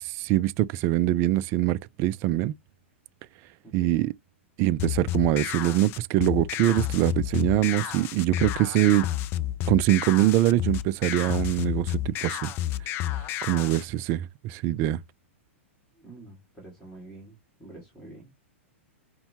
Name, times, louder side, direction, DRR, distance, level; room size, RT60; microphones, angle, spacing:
voice 1, 0.0-2.5 3.7-4.1 4.6-9.1 9.7-12.5 13.4-15.0, right 14 dB, 40° right, 0.3 m, -23 dB
voice 2, 3.6-3.9 16.0-18.3, right 2 dB, 5° left, 1.9 m, -47 dB
sound 1, 4.8-13.8, left 13 dB, 35° left, 0.4 m, -31 dB
5.3 x 2.2 x 2.8 m
hypercardioid pair, 120°, 7 cm